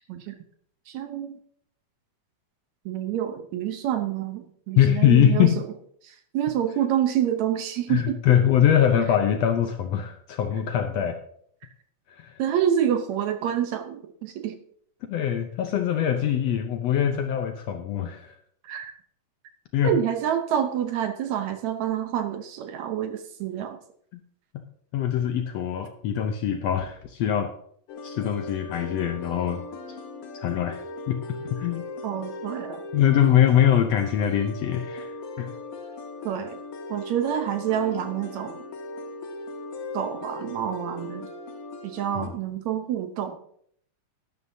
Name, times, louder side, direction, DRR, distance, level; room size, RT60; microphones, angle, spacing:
voice 1, 0.9-1.3 2.9-5.5 6.0-8.2 12.4-14.6 18.6-18.9 19.8-23.8 32.0-32.8 36.3-36.6 36.9-38.6 39.9-41.3 41.8-43.4, right 10 dB, 70° right, 7 dB, 2.0 m, -27 dB
voice 2, 4.7-5.6 7.9-11.2 12.2-12.4 15.1-18.3 19.7-20.0 24.1-24.2 24.5-24.6 24.9-27.5 28.0-29.6 30.3-31.2 31.6-31.8 32.9-35.5 42.1-42.3, left 10 dB, 75° left, 6 dB, 1.6 m, -23 dB
sound 1, 27.9-42.3, left 2 dB, 90° left, 2.8 m, -38 dB
12.0 x 11.0 x 2.7 m, 0.65 s
omnidirectional pair, 3.6 m